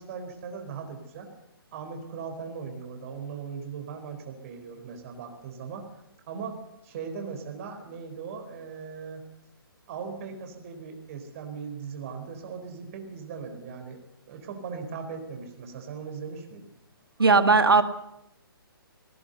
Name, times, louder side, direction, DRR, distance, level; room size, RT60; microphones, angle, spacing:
voice 1, 0.0-1.3 1.7-6.0 6.3-9.2 9.9-14.0 14.2-16.7, right 5 dB, 35° right, 5 dB, 4.5 m, -39 dB
voice 2, 17.2-17.8, right 4 dB, 70° right, 10 dB, 2.1 m, -18 dB
20.0 x 19.0 x 8.1 m, 0.85 s
figure-of-eight pair, 130°, 12 cm